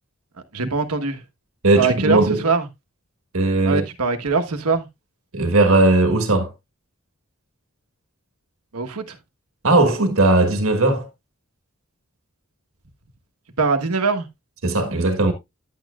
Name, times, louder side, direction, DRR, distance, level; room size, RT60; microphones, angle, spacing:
voice 1, 0.5-1.2 1.8-2.7 3.6-4.9 8.7-9.2 13.6-14.3, right 4 dB, 90° right, 1.3 m, -22 dB
voice 2, 1.6-2.4 3.3-3.8 5.3-6.5 9.6-11.1 14.6-15.3, right 2 dB, 70° right, 1.5 m, -17 dB
10.5 x 8.5 x 2.4 m
head